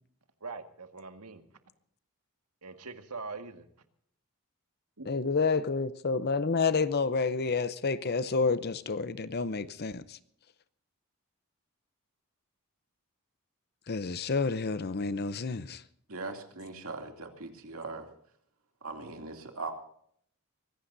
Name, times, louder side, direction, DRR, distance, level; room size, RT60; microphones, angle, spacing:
voice 1, 0.4-1.4 2.6-3.7 5.0-5.1, right 4 dB, 85° right, 1.8 m, -42 dB
voice 2, 5.1-10.2 13.9-15.8, left 4 dB, 45° left, 0.7 m, -29 dB
voice 3, 16.1-18.0 18.8-19.7, right 3 dB, 70° right, 2.7 m, -40 dB
24.0 x 17.5 x 2.7 m
head